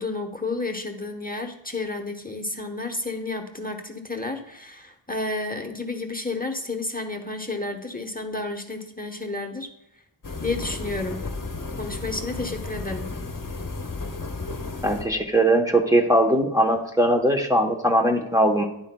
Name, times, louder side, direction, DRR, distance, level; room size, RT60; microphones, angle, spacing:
voice 1, 0.0-9.7 10.4-11.2 11.8-13.1, left 2 dB, 20° left, 4 dB, 1.0 m, -31 dB
sound 1, 10.2-15.2, left 3 dB, 45° left, 1.0 m, -33 dB
voice 2, 14.8-18.6, right 1 dB, 5° right, 1 dB, 1.0 m, -20 dB
12.0 x 10.5 x 2.3 m, 0.84 s
wide cardioid pair, 60°, 48 cm